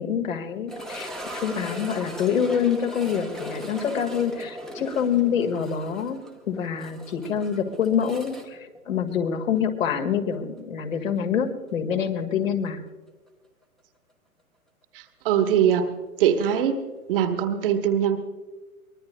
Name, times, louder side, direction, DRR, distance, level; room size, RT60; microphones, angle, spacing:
voice 1, 0.0-6.2 6.5-12.8, left 7 dB, 60° left, 5 dB, 1.8 m, -26 dB
sound 1, 0.7-9.6 9.9-10.0 10.6-10.7 13.3-13.4, equal, ahead, 0.8 m, -39 dB
voice 2, 14.9-15.9 16.2-18.2, right 9 dB, 40° right, 8 dB, 1.2 m, -22 dB
23.5 x 20.0 x 2.2 m, 1.2 s
figure-of-eight pair, 125°, 44 cm